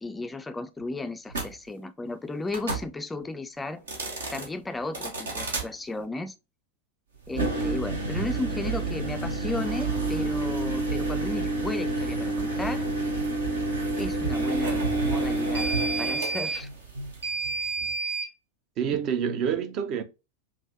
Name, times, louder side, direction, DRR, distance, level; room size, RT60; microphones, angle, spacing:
voice 1, 0.0-3.8 4.3-6.3 7.3-12.9 14.0-15.7 16.0-16.7, left 2 dB, 10° left, 0.4 m, -34 dB
sound 1, 1.3-1.5 2.5-2.9 3.8-4.5 4.9-5.7 7.3-18.3, right 2 dB, 70° right, 1.1 m, -28 dB
voice 2, 18.8-20.0, right 8 dB, 35° right, 0.6 m, -27 dB
5.3 x 2.6 x 2.6 m
figure-of-eight pair, 90°, 0 cm